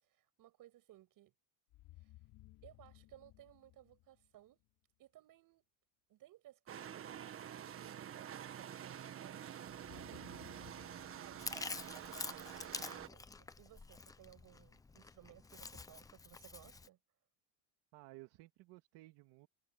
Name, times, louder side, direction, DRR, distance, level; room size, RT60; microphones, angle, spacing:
voice 1, 0.0-1.3 2.0-2.1 2.6-4.6 5.0-5.7 6.1-10.4 11.1-17.0, right 14 dB, 45° right, 6.7 m, -61 dB
sound 1, 1.7-4.7 9.7-12.9, left 18 dB, 55° left, 4.6 m, -61 dB
sound 2, 6.7-13.1, right 9 dB, 30° right, 1.5 m, -48 dB
voice 2, 10.1-10.6 17.9-19.5, right 20 dB, 60° right, 2.2 m, -57 dB
Chewing mastication, 11.4-16.9, left 4 dB, 10° left, 0.5 m, -47 dB
cardioid pair, 150°, 46 cm